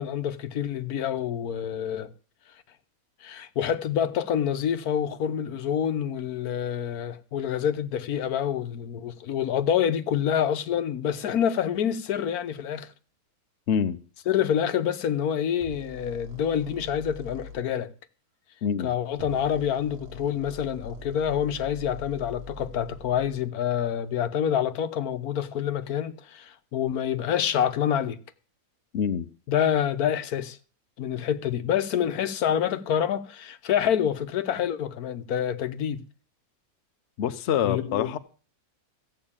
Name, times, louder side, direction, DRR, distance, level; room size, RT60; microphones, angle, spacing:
voice 1, 0.0-2.1 3.2-12.9 14.3-17.9 18.8-28.2 29.5-30.6 31.0-36.0 37.6-38.1, left 9 dB, 80° left, 1.3 m, -27 dB
voice 2, 13.7-14.0 18.6-18.9 28.9-29.3 37.2-38.2, left 8 dB, 55° left, 0.9 m, -25 dB
sound 1, 15.6-17.6 19.1-23.4, equal, 45° right, 1.2 m, -43 dB
14.5 x 5.5 x 8.7 m
omnidirectional pair, 1.6 m